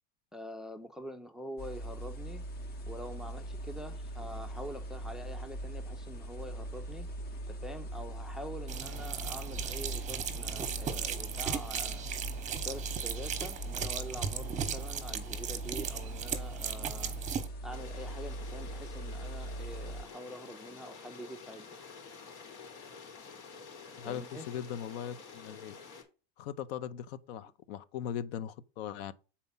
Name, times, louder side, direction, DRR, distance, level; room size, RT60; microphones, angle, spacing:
voice 1, 0.3-2.4 2.9-7.1 7.5-12.1 12.6-17.2 17.6-21.8 24.0-24.5, equal, ahead, 0.4 m, -45 dB
sound 1, 1.6-20.0, right 1 dB, 30° left, 0.9 m, -41 dB
sound 2, 8.7-17.5, right 8 dB, 20° right, 0.9 m, -37 dB
sound 3, 17.7-26.0, left 5 dB, 85° left, 3.2 m, -49 dB
voice 2, 24.0-25.7 26.4-29.1, left 9 dB, 65° left, 0.8 m, -39 dB
7.0 x 4.3 x 5.5 m
supercardioid pair, 150°, 32 cm